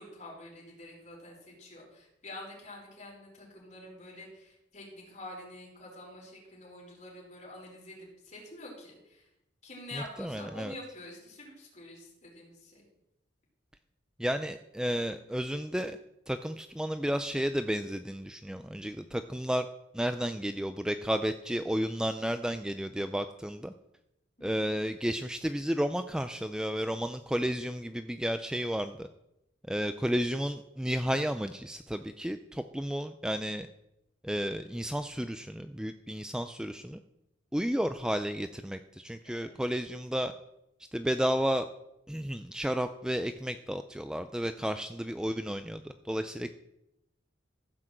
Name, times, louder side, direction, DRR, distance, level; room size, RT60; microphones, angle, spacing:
voice 1, 0.0-9.3 9.6-12.8 24.4-24.7 39.2-39.6, left 1 dB, 40° left, -2 dB, 5.0 m, -47 dB
voice 2, 10.2-10.7 14.2-16.0 16.3-19.7 19.9-23.7 24.4-29.1 29.7-33.7 34.2-37.0 37.5-40.3 40.9-41.7 42.1-46.5, equal, 5° right, 9 dB, 0.4 m, -32 dB
15.0 x 6.2 x 7.6 m, 0.87 s
head